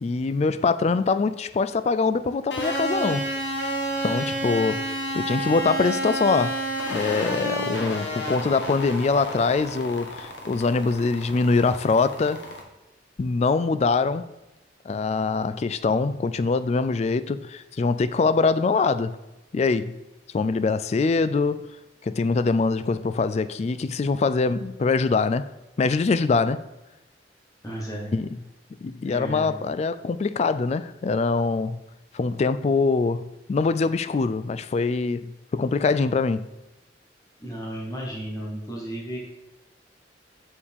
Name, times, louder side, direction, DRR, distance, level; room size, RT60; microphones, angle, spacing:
voice 1, 0.0-3.3 4.0-4.8 5.1-6.6 6.9-12.4 13.2-14.2 14.9-19.1 19.5-19.9 20.3-21.7 22.0-25.4 25.8-26.6 28.1-28.3 28.8-31.8 32.1-36.4, left 4 dB, 35° left, 0.3 m, -23 dB
sound 1, 2.5-12.6, right 1 dB, 70° left, 1.3 m, -30 dB
voice 2, 27.6-28.1 29.0-29.5 37.4-39.2, right 1 dB, 20° left, 1.3 m, -34 dB
7.0 x 6.6 x 3.6 m
head